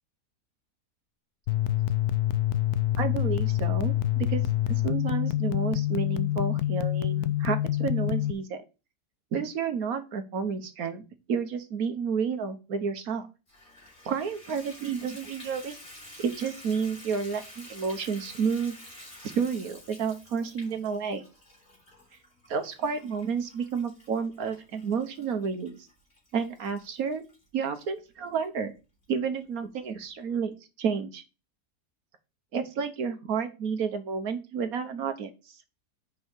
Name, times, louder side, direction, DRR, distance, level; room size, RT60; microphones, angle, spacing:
sound 1, 1.5-8.3, left 14 dB, 75° left, 1.1 m, -26 dB
voice 1, 3.0-4.4 4.7-8.6 9.3-13.3 14.0-15.8 16.2-18.7 19.2-21.2 22.5-25.8 26.3-27.2 27.5-28.7 29.1-31.2 32.5-35.3, right 6 dB, 65° right, 8 dB, 1.5 m, -31 dB
Water tap faucet / Bathtub (filling or washing), 13.5-27.9 28.4-28.5 29.0-29.1 29.4-29.5, left 1 dB, 40° left, 3.8 m, -50 dB
5.5 x 5.3 x 6.3 m, 0.29 s
omnidirectional pair, 1.7 m